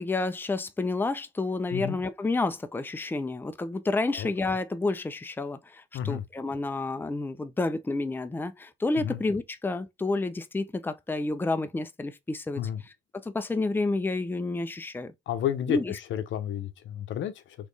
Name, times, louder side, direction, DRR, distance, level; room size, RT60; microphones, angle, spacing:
voice 1, 0.0-12.6 13.1-15.1 15.7-15.9, left 3 dB, 10° left, 0.5 m, -30 dB
voice 2, 15.3-17.6, left 10 dB, 75° left, 0.7 m, -31 dB
4.1 x 3.1 x 3.2 m
cardioid pair, 90°, 20 cm